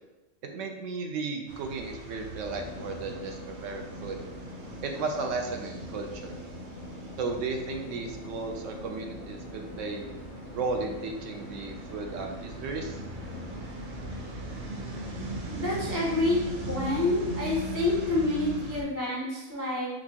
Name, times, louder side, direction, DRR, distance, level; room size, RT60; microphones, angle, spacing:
voice 1, 0.5-4.2 4.8-6.4 7.2-10.1 10.5-13.0, right 3 dB, 75° right, 3 dB, 0.9 m, -34 dB
sound 1, 1.5-18.8, right 2 dB, 55° right, 0.6 m, -40 dB
sound 2, 2.5-17.3, left 1 dB, 85° left, 1.0 m, -44 dB
voice 2, 15.5-16.4 16.6-19.9, left 2 dB, 30° left, -4 dB, 0.4 m, -28 dB
4.2 x 3.0 x 2.8 m, 1.1 s
omnidirectional pair, 1.3 m